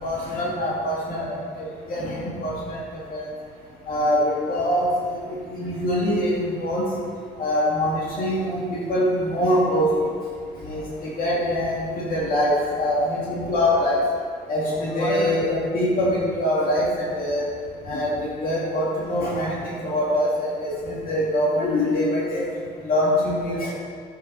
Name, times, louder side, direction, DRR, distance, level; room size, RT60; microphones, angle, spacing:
voice 1, 0.0-2.8 3.1-3.3 3.9-5.2 5.5-6.8 7.4-10.1 10.6-14.0 14.5-17.4 17.8-22.4 22.8-23.7, left 1 dB, 60° left, -6 dB, 2.6 m, -24 dB
10.0 x 9.9 x 4.2 m, 2.1 s
cardioid pair, 110°, 17 cm